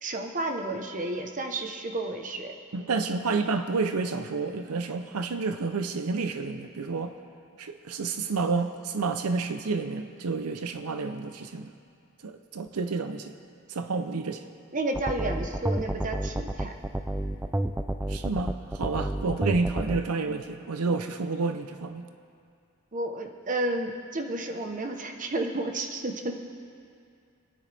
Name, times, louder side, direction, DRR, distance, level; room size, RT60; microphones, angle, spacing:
voice 1, 0.0-2.5 14.7-16.7 22.9-26.3, right 2 dB, 35° right, 4 dB, 1.0 m, -31 dB
voice 2, 2.7-7.1 7.6-11.7 12.2-13.3 13.7-14.4 18.1-22.0, right 4 dB, 85° right, 8 dB, 0.6 m, -30 dB
sound 1, 14.9-20.0, right 1 dB, 10° right, 0.4 m, -29 dB
28.0 x 10.0 x 3.4 m, 2.4 s
head